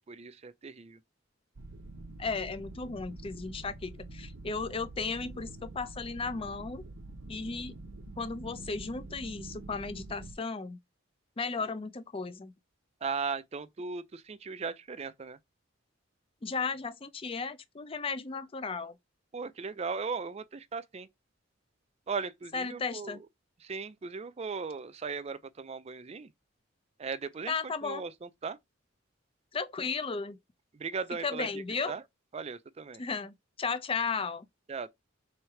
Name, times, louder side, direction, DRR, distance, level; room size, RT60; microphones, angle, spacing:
voice 1, 0.1-1.0 13.0-15.4 19.3-21.1 22.1-23.2 23.6-26.3 27.0-27.5 27.8-28.6 30.7-31.5 31.9-32.0 32.3-33.0 34.7-34.9, right 5 dB, 30° right, 0.4 m, -37 dB
sound 1, 1.6-10.3, right 2 dB, 80° right, 0.7 m, -46 dB
voice 2, 2.2-6.8 7.3-7.8 8.2-10.8 11.4-12.5 16.4-18.9 22.5-23.2 27.5-28.0 29.5-30.4 31.2-31.9 33.0-34.5, left 4 dB, 30° left, 0.5 m, -35 dB
3.5 x 3.2 x 4.4 m
head